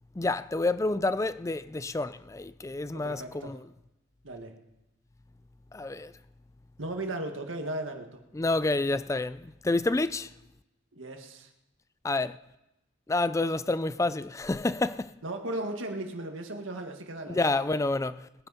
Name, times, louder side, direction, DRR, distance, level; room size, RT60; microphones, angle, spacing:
voice 1, 0.2-3.6 5.7-6.1 8.3-10.3 12.0-12.4 13.1-15.1 17.3-18.5, left 2 dB, 15° left, 0.4 m, -29 dB
voice 2, 2.9-3.6 4.2-4.6 6.8-8.2 10.9-11.5 15.2-17.7, right 1 dB, 85° right, 1.8 m, -36 dB
21.0 x 9.8 x 4.2 m
head